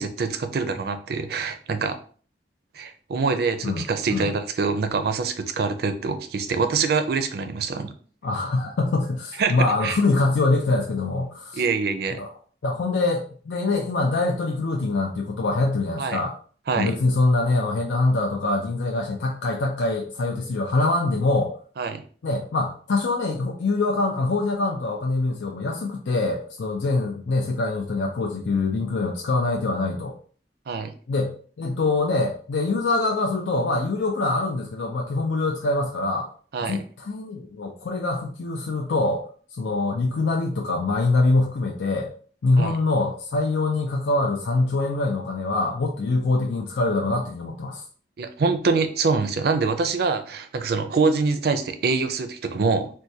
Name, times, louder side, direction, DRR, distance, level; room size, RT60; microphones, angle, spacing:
voice 1, 0.0-2.0 2.8-7.9 9.4-10.0 11.5-12.2 16.0-16.2 16.7-16.9 21.8-22.0 30.7-30.9 36.5-36.8 42.6-42.7 48.2-52.9, right 4 dB, 60° right, 8 dB, 0.4 m, -25 dB
voice 2, 3.6-4.3 8.2-11.7 12.1-12.3 12.6-16.4 16.7-21.5 22.2-30.2 31.1-36.3 36.6-39.2 39.5-42.1 42.4-47.8, left 2 dB, 90° left, 0 dB, 0.5 m, -24 dB
4.4 x 2.2 x 2.6 m, 0.43 s
head